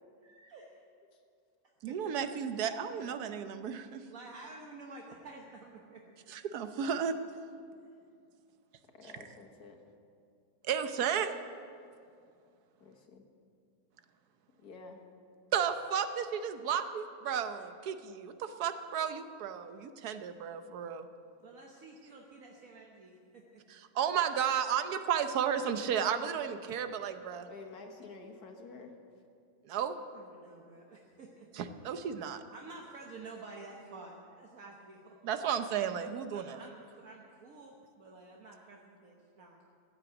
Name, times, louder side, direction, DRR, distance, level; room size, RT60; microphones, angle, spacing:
voice 1, 0.2-0.8 1.9-2.0 4.1-6.0 21.4-23.6 30.0-31.5 32.4-35.2 36.3-39.6, right 3 dB, 65° right, -1 dB, 1.5 m, -50 dB
voice 2, 1.8-4.0 6.3-7.2 10.6-11.4 15.5-21.1 23.7-27.5 29.6-30.0 31.5-32.4 35.2-36.6, right 8 dB, 85° right, 9 dB, 1.3 m, -33 dB
voice 3, 8.9-9.8 12.8-13.2 14.6-15.0 27.5-29.0, left 4 dB, 90° left, 3 dB, 2.0 m, -49 dB
15.0 x 8.8 x 7.9 m, 2.4 s
omnidirectional pair, 1.6 m